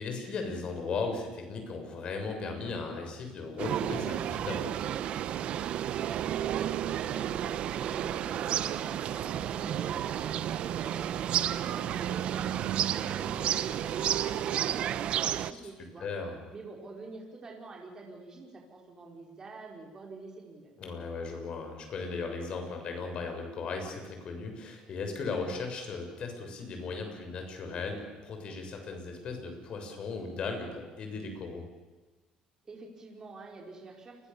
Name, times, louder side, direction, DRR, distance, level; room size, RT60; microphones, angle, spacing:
voice 1, 0.0-4.7 16.0-16.4 20.8-31.6, left 4 dB, 50° left, 4 dB, 7.0 m, -37 dB
sound 1, 3.6-15.5, right 11 dB, 60° right, 1.0 m, -31 dB
voice 2, 5.9-16.1 16.5-20.8 32.6-34.3, right 3 dB, 30° right, 0 dB, 5.2 m, -46 dB
28.5 x 22.5 x 7.2 m, 1.3 s
cardioid pair, 110°, 2 cm